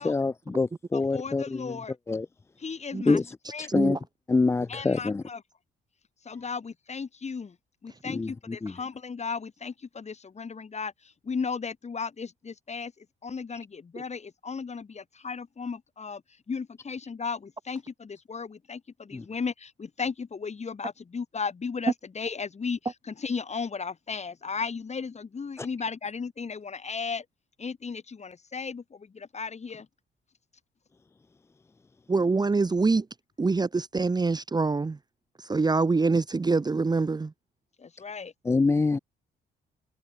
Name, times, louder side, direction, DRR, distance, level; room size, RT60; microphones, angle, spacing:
voice 1, 0.0-1.8 2.1-2.3 3.1-4.0 4.3-5.2 8.1-8.7 19.1-19.2 25.6-25.7 38.5-39.0, left 3 dB, 15° left, 0.3 m, -26 dB
voice 2, 0.9-2.0 2.6-3.2 3.5-3.7 4.7-5.4 6.2-7.6 7.8-16.2 16.5-27.2 27.6-29.9 37.8-38.3, left 5 dB, 35° left, 2.6 m, -35 dB
voice 3, 3.7-4.0 32.1-33.1 33.4-35.0 35.4-37.3, right 3 dB, 20° right, 0.8 m, -25 dB
cardioid pair, 90°, 20 cm